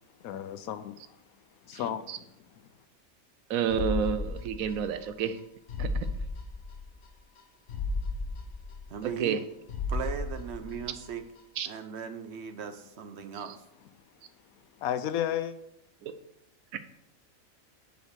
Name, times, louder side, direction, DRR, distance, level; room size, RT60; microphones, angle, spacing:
voice 1, 0.2-1.2 1.6-2.3 14.8-15.5, left 10 dB, 90° left, 11 dB, 1.1 m, -33 dB
voice 2, 3.5-5.4 5.8-6.1 9.0-9.4 11.6-11.7 16.0-16.1, right 7 dB, 80° right, 10 dB, 1.1 m, -30 dB
sound 1, 3.7-5.1 5.4-5.5 5.7-7.1 7.4-7.5 7.7-9.4 9.7-11.1 11.4-11.5, left 3 dB, 60° left, 1.3 m, -34 dB
voice 3, 8.9-9.4 9.9-11.3 11.7-13.6, right 7 dB, 60° right, 8 dB, 0.8 m, -38 dB
5.2 x 5.1 x 6.1 m, 0.78 s
omnidirectional pair, 1.5 m